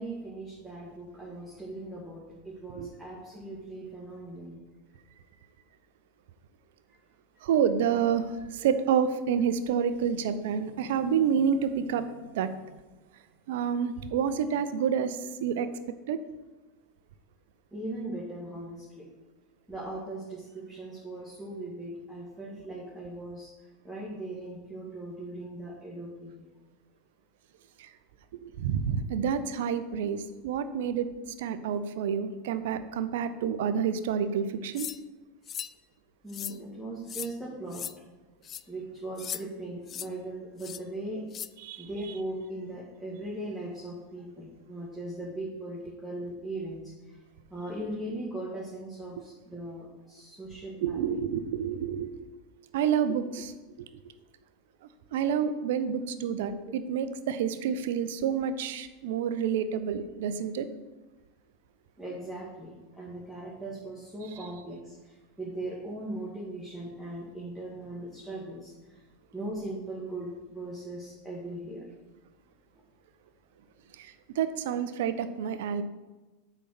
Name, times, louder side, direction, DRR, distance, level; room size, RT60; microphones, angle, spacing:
voice 1, 0.0-4.6 17.7-19.0 19.7-23.5 23.8-26.5 30.8-30.9 36.2-37.9 38.7-41.2 41.8-46.9 47.5-51.2 62.0-68.7 69.3-71.9, right 1 dB, ahead, -7 dB, 2.1 m, -39 dB
voice 2, 7.4-12.0 12.4-12.5 13.5-15.7 16.1-16.2 28.4-31.1 31.4-34.9 41.6-41.8 50.8-52.1 52.7-53.5 55.1-60.7 74.4-75.8, right 7 dB, 60° right, 11 dB, 0.6 m, -28 dB
sound 1, 34.8-35.0 35.5-35.7 36.3-36.6 37.1-37.3 37.7-37.9 38.4-38.6 39.2-39.4 39.9-40.1 40.6-40.8 41.3-41.5, left 9 dB, 30° left, 0.3 m, -37 dB
8.2 x 4.0 x 6.1 m, 1.2 s
figure-of-eight pair, 85°, 0 cm